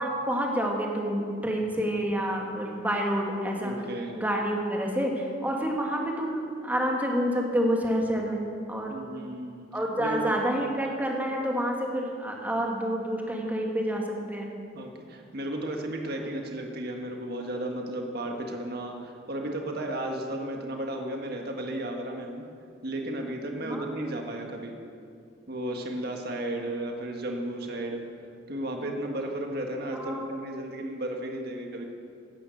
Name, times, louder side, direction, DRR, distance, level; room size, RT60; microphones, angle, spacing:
voice 1, 0.0-3.7 4.1-9.0 9.7-14.6 23.6-23.8 29.9-30.3, equal, 10° right, 0 dB, 1.9 m, -28 dB
voice 2, 3.6-4.1 8.9-9.7 10.0-10.3 14.7-22.5 22.8-24.8 25.5-28.0 28.5-31.8, right 1 dB, 55° right, 2 dB, 1.7 m, -34 dB
16.5 x 10.5 x 6.5 m, 2.4 s
head